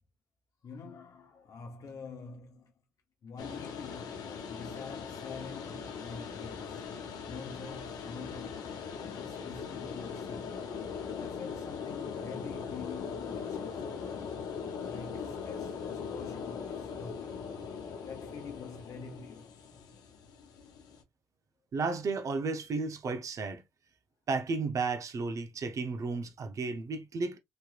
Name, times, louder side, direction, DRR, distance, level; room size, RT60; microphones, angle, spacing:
voice 1, 0.6-2.7 3.2-8.8 9.1-10.6 11.2-13.8 14.6-17.4 18.0-19.5, left 5 dB, 55° left, 0.8 m, -46 dB
sound 1, 3.4-21.0, left 6 dB, 90° left, 0.9 m, -40 dB
voice 2, 21.7-23.6 24.3-27.4, right 4 dB, 55° right, 0.7 m, -33 dB
3.2 x 3.0 x 2.4 m
cardioid pair, 90°, 7 cm